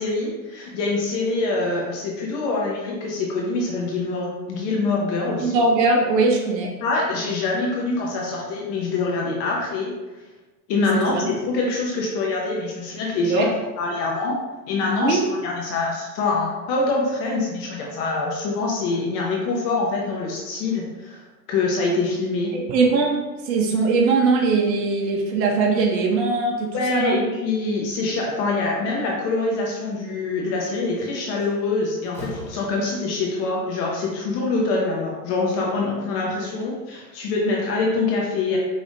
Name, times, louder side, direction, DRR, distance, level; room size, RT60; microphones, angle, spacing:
voice 1, 0.0-5.5 6.8-9.9 10.7-13.5 13.8-14.4 14.7-21.2 21.5-22.6 26.7-38.6, left 3 dB, 30° left, -2 dB, 0.6 m, -25 dB
voice 2, 5.4-6.7 11.0-11.2 13.3-13.5 15.0-15.2 22.5-27.2, right 3 dB, 80° right, 0 dB, 0.9 m, -21 dB
Slam, 30.7-31.0 31.4-33.3, left 1 dB, 5° left, 1.2 m, -39 dB
4.9 x 3.3 x 2.6 m, 1.1 s
supercardioid pair, 140°, 50 cm